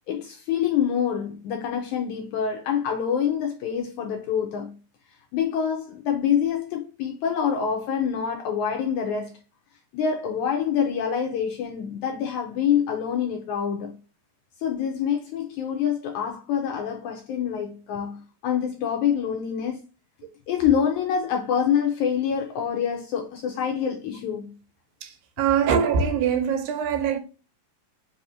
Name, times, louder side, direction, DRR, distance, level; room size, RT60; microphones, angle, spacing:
voice 1, 0.1-4.7 5.3-9.3 9.9-14.0 14.6-19.8 20.5-24.6, left 8 dB, 80° left, 1.8 m, -26 dB
voice 2, 25.0-27.2, right 7 dB, 90° right, 2.5 m, -23 dB
5.3 x 2.9 x 2.5 m
omnidirectional pair, 4.0 m